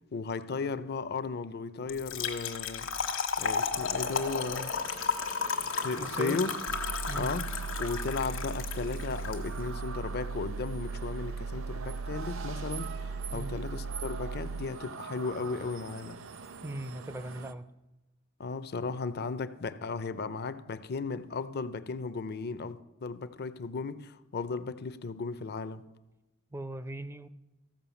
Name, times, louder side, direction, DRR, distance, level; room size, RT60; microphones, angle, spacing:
voice 1, 0.1-2.9 3.4-4.8 5.7-6.5 7.1-7.5 7.8-16.2 18.4-25.8, left 4 dB, 50° left, 0.6 m, -35 dB
Trickle dribble / Fill (with liquid), 1.9-9.4, left 5 dB, 70° left, 1.3 m, -33 dB
sound 1, 3.7-17.5, right 5 dB, 70° right, 0.7 m, -45 dB
voice 2, 6.0-6.4 7.1-7.3 13.3-13.5 16.6-17.7 26.5-27.3, right 1 dB, 10° right, 0.4 m, -38 dB
sound 2, 6.7-14.7, right 4 dB, 90° right, 0.3 m, -38 dB
15.0 x 5.6 x 7.0 m
head